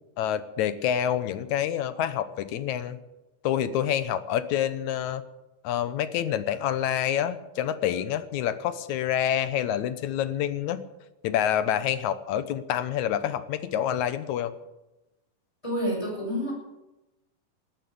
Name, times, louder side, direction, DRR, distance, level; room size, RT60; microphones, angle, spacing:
voice 1, 0.2-3.0 3.4-5.2 5.6-10.8 11.2-14.5, left 10 dB, 70° left, 12 dB, 2.0 m, -27 dB
voice 2, 15.6-16.5, equal, 10° left, -2 dB, 7.2 m, -28 dB
19.0 x 10.5 x 7.0 m, 0.98 s
omnidirectional pair, 3.9 m